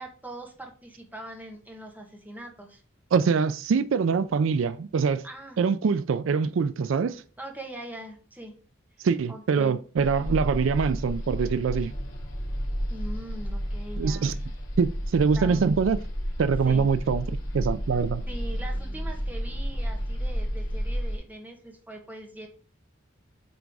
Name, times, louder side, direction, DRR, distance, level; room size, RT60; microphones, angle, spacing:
voice 1, 0.0-2.8 5.2-5.6 7.4-8.5 9.0-9.8 12.9-14.4 15.3-15.6 16.6-16.9 18.3-22.5, right 1 dB, 10° right, 1.3 m, -42 dB
voice 2, 3.1-5.3 5.6-7.2 9.0-11.9 14.0-14.4 14.8-16.0 16.4-17.3 17.5-18.2, right 5 dB, 75° right, 0.4 m, -24 dB
sound 1, 10.0-21.2, equal, 80° left, 2.5 m, -31 dB
7.8 x 3.5 x 4.7 m
head